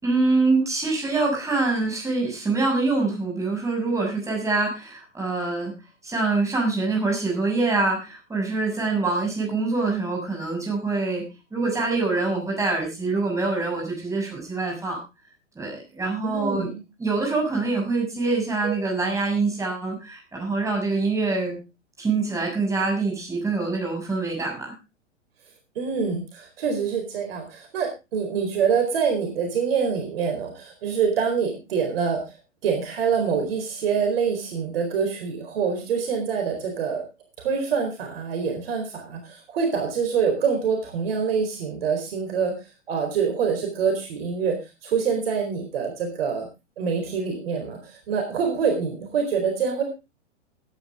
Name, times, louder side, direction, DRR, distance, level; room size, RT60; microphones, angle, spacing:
voice 1, 0.0-5.7 6.0-11.2 11.5-15.0 15.5-16.7 17.0-21.6 22.0-24.7, right 3 dB, 10° right, 0 dB, 6.7 m, -25 dB
voice 2, 16.2-16.7 18.6-18.7 25.7-32.2 32.6-37.0 37.4-42.5 42.9-44.6 44.8-46.5 46.8-49.8, right 6 dB, 50° right, 3 dB, 4.4 m, -25 dB
16.5 x 10.0 x 3.7 m, 0.28 s
figure-of-eight pair, 110°, 36 cm